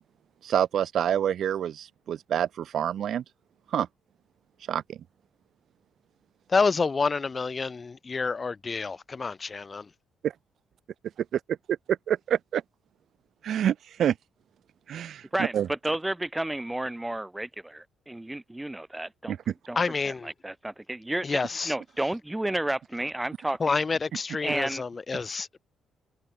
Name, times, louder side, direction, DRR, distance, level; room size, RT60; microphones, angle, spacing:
voice 1, 0.4-3.2 3.7-3.9 4.7-5.0 10.2-10.3 11.7-12.6 13.4-14.2 14.9-15.7 19.3-19.5, right 9 dB, 65° right, 0.4 m, -27 dB
voice 2, 6.5-9.8 19.8-20.3 21.2-21.7 23.6-25.6, left 4 dB, 30° left, 0.4 m, -28 dB
voice 3, 15.3-19.4 19.7-19.8 20.0-21.4 21.6-23.7 24.4-24.8, right 1 dB, 10° right, 1.2 m, -31 dB
cardioid pair, 90°, 0 cm